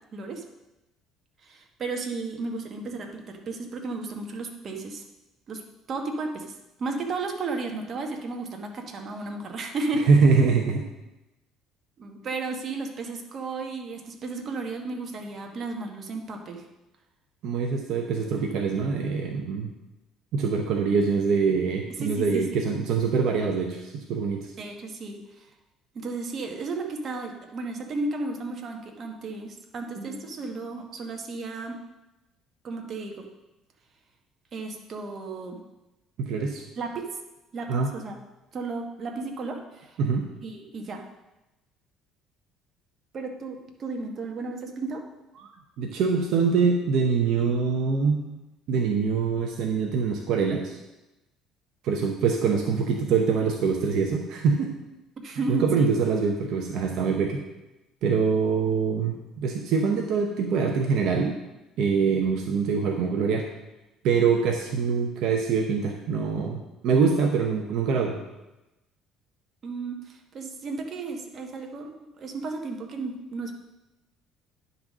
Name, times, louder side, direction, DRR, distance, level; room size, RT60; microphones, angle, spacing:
voice 1, 0.1-0.4 1.4-5.0 5.5-5.6 5.9-10.1 12.0-16.7 22.0-22.6 24.6-25.5 25.9-31.8 32.6-33.3 34.5-35.6 36.8-37.1 37.5-38.1 38.5-40.0 40.4-41.1 43.1-45.0 55.2-55.9 69.6-73.5, right 3 dB, 45° right, 3 dB, 1.3 m, -34 dB
voice 2, 10.1-10.8 17.4-19.7 20.3-24.5 36.2-36.6 37.7-37.9 40.0-40.3 45.4-45.5 45.8-48.2 48.7-50.8 51.8-54.7 55.5-57.4 58.0-61.4 61.8-63.5 64.0-68.2, right 5 dB, 70° right, 2 dB, 0.9 m, -24 dB
10.0 x 4.1 x 6.1 m, 1.0 s
cardioid pair, 105°, 0 cm